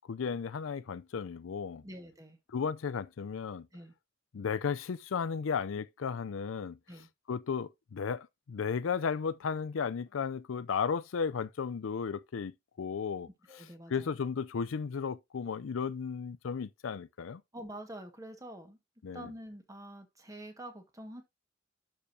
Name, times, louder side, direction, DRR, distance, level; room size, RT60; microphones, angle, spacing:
voice 1, 0.1-1.8 2.5-3.7 4.3-6.8 7.3-13.3 13.5-13.6 13.9-17.4 19.0-19.3, left 6 dB, 85° left, 0.4 m, -34 dB
voice 2, 1.8-2.4 3.7-3.9 6.9-7.1 13.5-14.1 17.5-18.8 19.1-21.2, right 1 dB, 15° right, 1.5 m, -46 dB
11.5 x 4.9 x 2.7 m
head